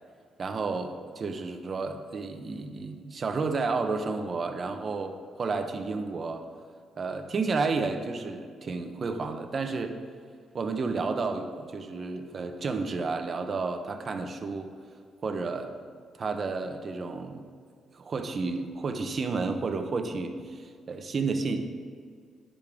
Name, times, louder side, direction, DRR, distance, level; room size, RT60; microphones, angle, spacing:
voice 1, 0.4-6.4 7.0-10.0 10.5-14.7 15.2-15.7 16.2-17.5 17.9-21.6, right 4 dB, 45° right, 6 dB, 0.8 m, -31 dB
9.9 x 7.0 x 3.6 m, 2.1 s
cardioid pair, 90°, 0 cm